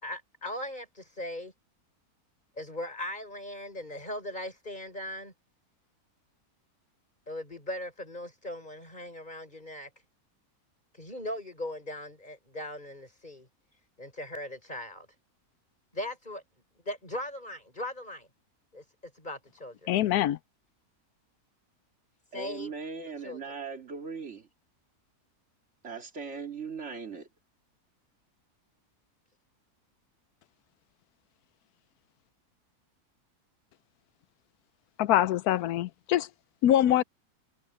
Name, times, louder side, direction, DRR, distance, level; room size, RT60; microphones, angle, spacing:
voice 1, 0.0-1.5 2.6-5.3 7.3-9.9 10.9-13.5 14.0-15.1 15.9-16.4 16.8-18.3 18.7-19.9 22.3-22.7 23.2-23.4, left 1 dB, 30° left, 6.4 m, -39 dB
voice 2, 19.9-20.4 35.0-36.3 36.6-37.0, left 12 dB, 80° left, 1.1 m, -24 dB
voice 3, 22.3-24.5 25.8-27.3, right 5 dB, 50° right, 2.7 m, -39 dB
omnidirectional pair, 1.6 m